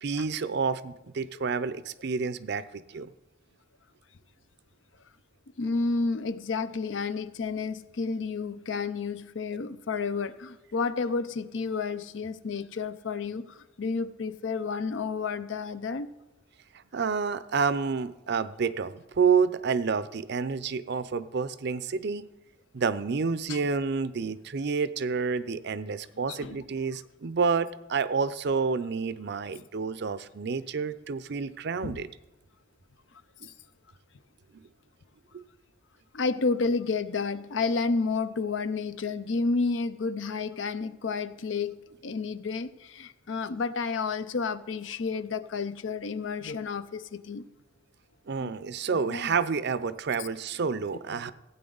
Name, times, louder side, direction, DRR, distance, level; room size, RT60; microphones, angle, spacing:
voice 1, 0.0-3.1 16.9-22.3 22.7-32.1 35.3-35.4 48.3-51.3, right 5 dB, 60° right, 15 dB, 0.5 m, -29 dB
voice 2, 5.6-16.1 23.5-23.6 26.3-26.6 31.8-32.0 33.4-33.5 36.1-41.8 42.0-47.4 48.4-48.5 48.9-49.4 51.1-51.3, left 4 dB, 70° left, 13 dB, 0.6 m, -31 dB
16.0 x 9.1 x 3.9 m, 1.1 s
head